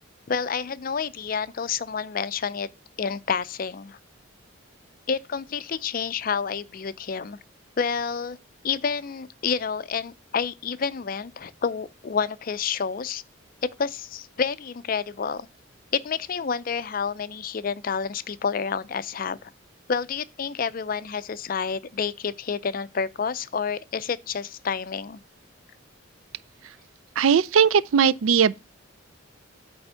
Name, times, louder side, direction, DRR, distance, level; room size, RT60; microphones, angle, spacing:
voice 1, 0.3-2.7 3.0-4.0 5.1-7.4 7.8-8.4 8.6-13.2 13.8-15.5 15.9-19.5 19.9-25.2, left 6 dB, 40° left, 0.4 m, -29 dB
voice 2, 27.2-28.5, right 7 dB, 75° right, 0.4 m, -19 dB
8.7 x 3.4 x 6.7 m
head